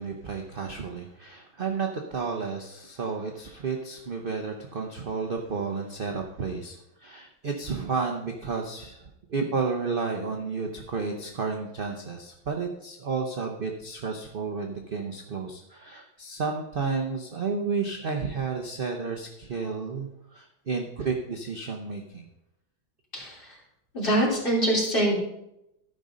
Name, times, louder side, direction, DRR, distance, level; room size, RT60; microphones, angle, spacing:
voice 1, 0.0-22.3, right 4 dB, 50° right, 3 dB, 0.6 m, -32 dB
voice 2, 23.9-25.2, right 1 dB, 25° left, -5 dB, 3.3 m, -24 dB
13.0 x 5.4 x 5.1 m, 0.84 s
omnidirectional pair, 2.1 m